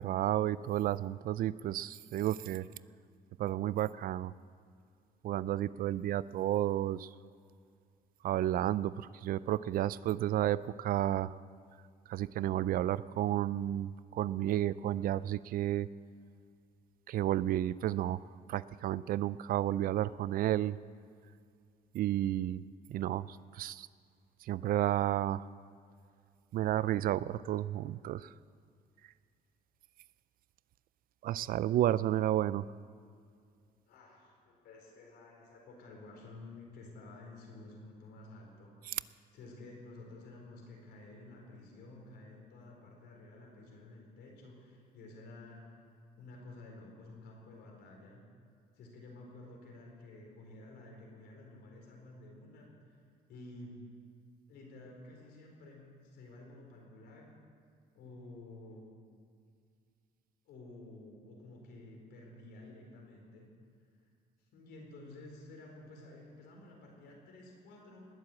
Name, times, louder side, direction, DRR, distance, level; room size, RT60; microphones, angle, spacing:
voice 1, 0.0-2.7 3.4-4.3 5.2-7.1 8.2-11.4 12.1-15.9 17.1-18.2 18.5-20.8 21.9-22.6 22.9-23.9 24.5-25.5 26.5-28.3 31.2-32.6 38.9-39.0, right 12 dB, 60° right, 18 dB, 0.4 m, -32 dB
voice 2, 33.9-45.7 46.2-48.2 48.7-53.0 53.3-53.9 54.5-57.4 57.9-58.9 60.5-63.5 64.5-68.1, left 2 dB, 80° left, 0 dB, 4.6 m, -52 dB
20.0 x 7.7 x 8.5 m, 2.3 s
cardioid pair, 110°, 17 cm